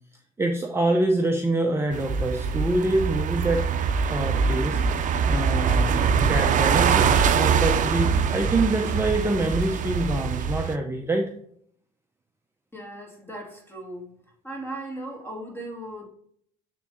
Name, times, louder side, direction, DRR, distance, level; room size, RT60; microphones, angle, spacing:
voice 1, 0.4-3.6 4.1-11.3, right 2 dB, 15° right, 3 dB, 0.8 m, -26 dB
sound 1, 1.9-10.8, right 6 dB, 45° right, 0.7 m, -23 dB
voice 2, 12.7-14.1 14.4-16.0, right 1 dB, 10° left, 0 dB, 2.5 m, -37 dB
7.4 x 3.7 x 4.2 m, 0.64 s
supercardioid pair, 80°, 18 cm